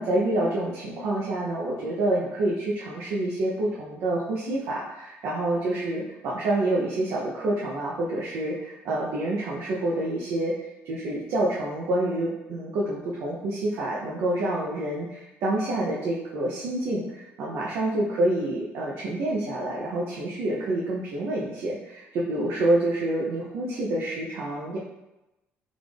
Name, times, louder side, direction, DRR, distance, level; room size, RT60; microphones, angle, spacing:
voice 1, 0.0-10.5 10.8-24.8, right 1 dB, 70° right, -5 dB, 0.6 m, -27 dB
3.6 x 2.4 x 3.3 m, 0.98 s
cardioid pair, 150°, 5 cm